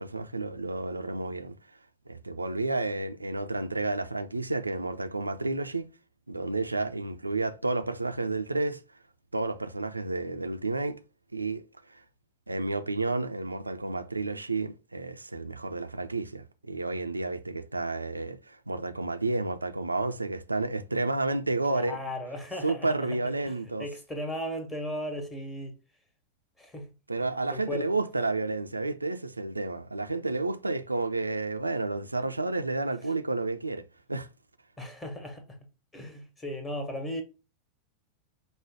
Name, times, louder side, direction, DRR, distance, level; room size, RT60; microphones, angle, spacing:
voice 1, 0.0-1.6 2.1-5.9 6.3-8.8 9.3-11.0 11.3-11.6 11.9-12.0 12.5-22.0 22.6-23.9 27.1-34.3, right 2 dB, 80° right, 0.4 m, -31 dB
voice 2, 21.7-23.1 23.4-23.5 23.8-25.8 26.6-26.9 27.5-27.9 34.8-35.6 35.9-37.2, equal, 15° left, 1.3 m, -36 dB
5.0 x 2.1 x 4.8 m
figure-of-eight pair, 90°, 0 cm